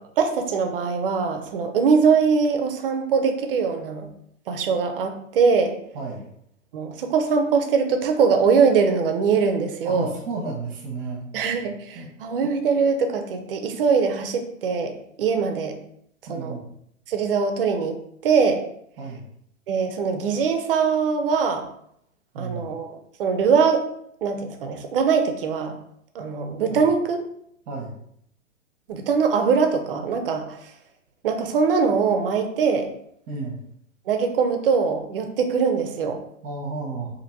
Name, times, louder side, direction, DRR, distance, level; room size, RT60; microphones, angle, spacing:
voice 1, 0.2-4.1 4.5-5.7 6.7-10.1 11.3-15.8 16.3-16.6 17.1-18.0 18.2-18.6 19.7-21.6 22.4-22.9 23.2-23.8 24.2-25.8 26.1-27.2 28.9-30.7 31.2-32.9 34.1-36.2, right 5 dB, 45° right, 6 dB, 0.6 m, -22 dB
voice 2, 5.9-6.3 9.8-11.5 11.9-12.1 16.3-16.6 19.0-19.3 22.3-22.6 26.7-26.9 27.7-28.0 33.3-33.6 36.4-37.1, right 3 dB, 25° right, -1 dB, 0.9 m, -32 dB
4.4 x 2.8 x 2.6 m, 0.72 s
figure-of-eight pair, 120°, 39 cm